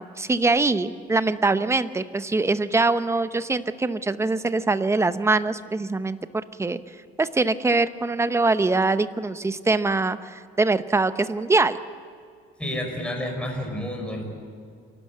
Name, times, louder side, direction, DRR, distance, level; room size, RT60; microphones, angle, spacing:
voice 1, 0.0-6.8 7.2-11.8, right 3 dB, 15° right, 12 dB, 0.8 m, -23 dB
voice 2, 12.6-14.2, left 1 dB, 5° left, 2 dB, 5.2 m, -30 dB
27.0 x 12.5 x 8.5 m, 2.2 s
cardioid pair, 110°, 21 cm